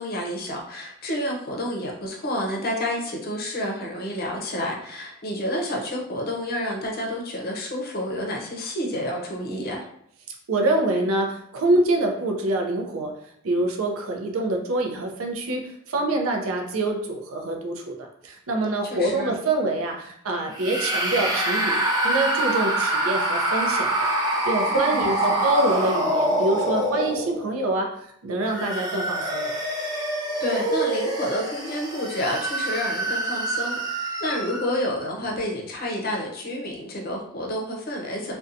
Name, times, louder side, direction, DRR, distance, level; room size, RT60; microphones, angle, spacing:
voice 1, 0.0-9.9 18.8-19.4 24.7-25.5 29.9-38.4, left 1 dB, 45° left, -1 dB, 0.6 m, -29 dB
voice 2, 10.5-13.1 13.4-23.9 24.2-27.9 28.2-29.5, right 2 dB, 80° right, 2 dB, 0.5 m, -25 dB
sound 1, 20.5-27.6 28.3-34.8, right 1 dB, 20° right, 0.5 m, -26 dB
2.6 x 2.2 x 2.5 m, 0.69 s
head